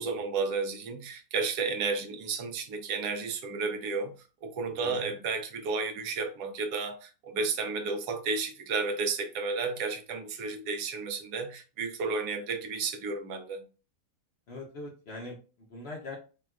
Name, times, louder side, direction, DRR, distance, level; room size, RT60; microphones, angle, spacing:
voice 1, 0.0-4.1 4.4-13.6, right 4 dB, 80° right, 1.1 m, -32 dB
voice 2, 14.5-16.2, left 2 dB, 55° left, 0.7 m, -42 dB
4.2 x 2.3 x 2.3 m
omnidirectional pair, 1.7 m